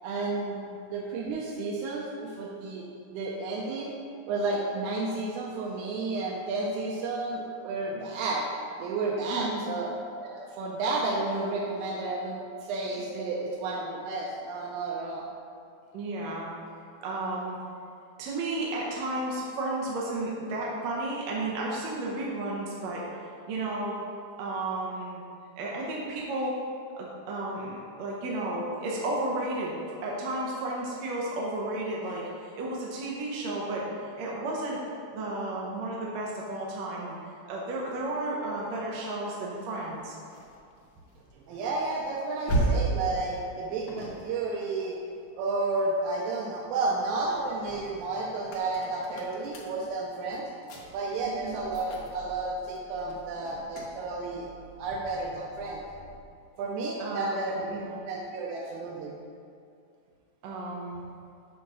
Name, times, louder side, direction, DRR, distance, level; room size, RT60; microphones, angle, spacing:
voice 1, 0.0-0.6 0.9-2.8 3.1-3.9 4.3-8.4 8.8-9.9 10.2-15.3 41.5-45.0 45.4-50.5 50.9-54.5 54.8-55.8 56.6-57.7 58.1-59.1, right 3 dB, 90° right, -3 dB, 2.1 m, -31 dB
voice 2, 9.2-9.6 15.9-16.5 17.0-17.6 18.2-23.0 23.5-24.0 24.4-25.2 25.6-26.6 27.0-34.8 35.1-37.2 37.5-40.2 51.2-51.6 57.0-58.0 60.4-61.0, right 2 dB, 70° right, -4 dB, 1.9 m, -33 dB
sound 1, 39.6-46.1 46.6-56.4, right 2 dB, 75° left, 1.1 m, -37 dB
7.9 x 3.7 x 5.4 m, 2.4 s
omnidirectional pair, 3.4 m